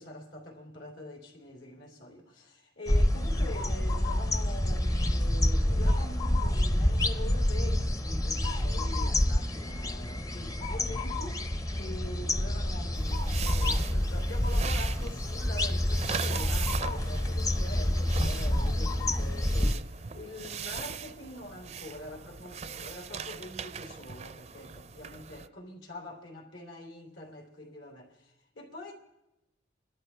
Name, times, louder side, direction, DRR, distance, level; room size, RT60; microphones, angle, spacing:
voice 1, 0.0-28.9, left 1 dB, 85° left, 3.1 m, -44 dB
sound 1, 2.9-19.7, left 1 dB, 20° left, 0.6 m, -28 dB
sound 2, 12.9-25.5, right 7 dB, 35° right, 0.4 m, -40 dB
29.0 x 13.0 x 3.4 m
head